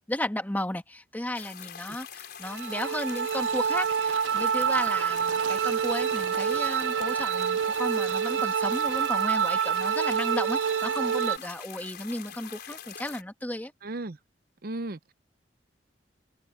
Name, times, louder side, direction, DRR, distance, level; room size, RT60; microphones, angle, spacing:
voice 1, 0.1-13.7, left 1 dB, 10° left, 1.7 m, -34 dB
sound 1, 1.3-13.2, left 8 dB, 60° left, 4.8 m, -44 dB
sound 2, 2.5-11.4, right 7 dB, 80° right, 0.5 m, -27 dB
voice 2, 13.8-14.2 14.6-15.1, right 2 dB, 55° right, 0.8 m, -35 dB
head